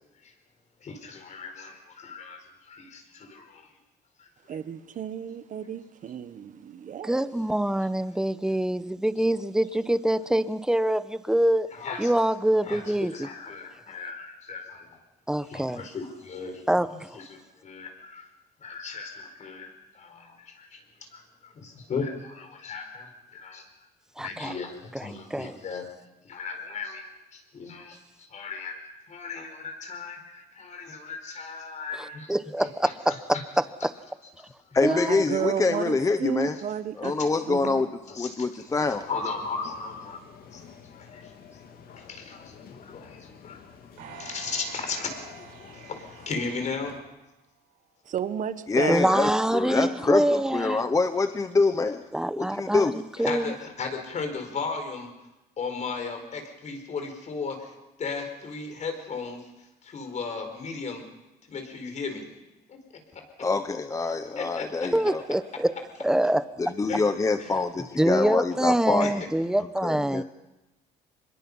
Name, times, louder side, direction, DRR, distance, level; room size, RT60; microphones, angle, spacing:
voice 1, 0.8-3.7 4.2-4.6 11.7-12.1 12.6-14.9 15.5-18.3 18.6-20.8 21.1-23.7 24.2-25.8 26.2-28.0 28.3-32.3 32.6-33.4 34.4-34.5 38.1-38.3 39.0-40.2 40.5-40.6 41.0-41.3 42.0-43.6 44.1-45.1 45.7-47.0 53.2-55.1 55.6-59.4 59.8-61.1 61.5-62.2 62.7-62.8 63.1-63.2 64.4-64.9 66.9-67.0 67.4-67.5 69.0-69.1, left 4 dB, 45° left, 5 dB, 4.7 m, -36 dB
voice 2, 4.5-7.4 34.8-37.1 37.5-37.9 48.1-49.0, right 9 dB, 50° right, 12 dB, 1.3 m, -32 dB
voice 3, 7.0-11.7 12.0-13.3 15.3-15.9 16.7-17.2 24.2-24.5 24.9-25.5 32.3-33.9 34.8-35.2 48.9-50.8 52.1-53.5 64.9-65.7 66.0-66.5 68.0-70.2, right 1 dB, 5° right, 14 dB, 0.8 m, -25 dB
voice 4, 34.7-36.6 37.0-37.9 38.2-39.0 48.7-52.0 52.4-53.0 63.4-65.2 66.6-69.2 69.8-70.2, left 3 dB, 20° left, 9 dB, 0.9 m, -25 dB
sound 1, 38.7-47.0, left 6 dB, 60° left, 2.6 m, -49 dB
sound 2, 44.0-47.4 47.9-48.0, right 6 dB, 90° right, 6.3 m, -46 dB
24.5 x 21.5 x 5.6 m, 0.98 s
cardioid pair, 110°, 17 cm